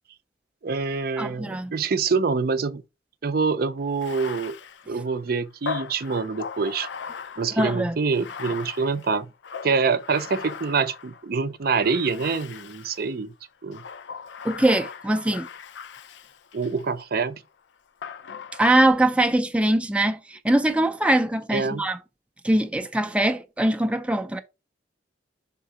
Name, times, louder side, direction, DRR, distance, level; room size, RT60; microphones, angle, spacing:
voice 1, 0.6-2.8 3.2-4.6 4.9-6.9 7.4-9.3 9.6-13.3 13.6-13.8 16.5-17.4 21.5-21.8, right 4 dB, 60° right, 0.5 m, -25 dB
voice 2, 1.2-1.7 7.6-8.0 14.4-15.5 18.6-22.0 22.4-24.4, right 1 dB, 5° right, 0.4 m, -22 dB
Bathtub (filling or washing), 3.9-11.3 11.8-13.1 13.7-16.9 18.0-19.0, left 6 dB, 80° left, 0.5 m, -38 dB
5.6 x 3.7 x 4.9 m
head